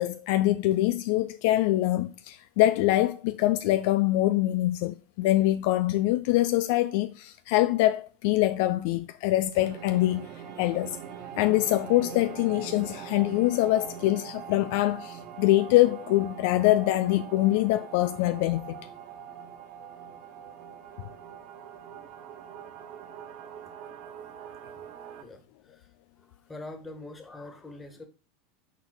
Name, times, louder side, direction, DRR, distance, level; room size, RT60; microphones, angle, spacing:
voice 1, 0.0-10.3 10.6-11.0 11.4-18.7, left 16 dB, 60° left, 0.4 m, -24 dB
sound 1, 9.5-25.2, right 8 dB, 50° right, 0.8 m, -43 dB
voice 2, 26.5-28.0, left 2 dB, 15° left, 1.6 m, -42 dB
6.2 x 4.3 x 3.8 m
figure-of-eight pair, 80°, 0 cm